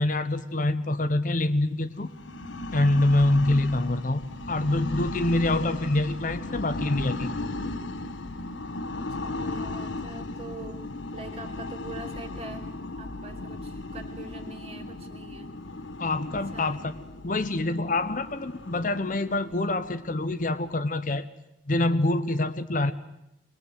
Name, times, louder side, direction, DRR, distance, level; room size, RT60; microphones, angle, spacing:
voice 1, 0.0-2.1 2.7-7.4 16.0-17.0 17.2-21.3 21.7-22.9, left 2 dB, 40° left, 10 dB, 0.8 m, -25 dB
sound 1, 2.0-20.7, left 2 dB, 75° left, 1.2 m, -36 dB
voice 2, 8.9-10.8 11.1-12.7 13.0-15.9 16.3-16.8, right 2 dB, 30° right, 2 dB, 2.7 m, -44 dB
22.0 x 21.5 x 8.0 m, 0.85 s
head